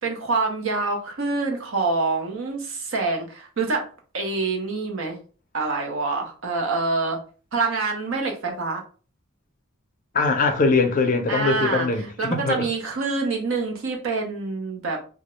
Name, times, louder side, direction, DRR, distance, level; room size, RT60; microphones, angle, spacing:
voice 1, 0.0-3.9 4.1-5.2 5.5-7.2 7.5-8.8 11.3-11.9 12.2-15.0, right 3 dB, 75° right, 0.7 m, -26 dB
voice 2, 10.1-12.7, left 3 dB, 40° left, 0.4 m, -22 dB
2.3 x 2.1 x 2.9 m
head